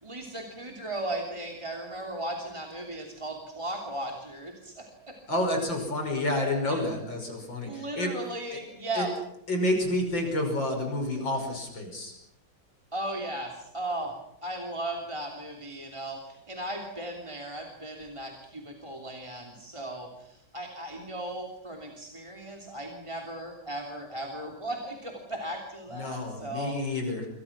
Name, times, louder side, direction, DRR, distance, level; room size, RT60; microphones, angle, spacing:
voice 1, 0.0-5.1 6.7-6.8 7.7-9.1 12.9-14.1 14.4-26.7, right 1 dB, 15° right, 3 dB, 3.0 m, -36 dB
voice 2, 5.3-8.6 8.9-9.1 9.5-12.1 25.9-27.3, left 1 dB, 65° left, 3 dB, 6.5 m, -29 dB
27.5 x 25.5 x 6.1 m, 0.79 s
omnidirectional pair, 2.2 m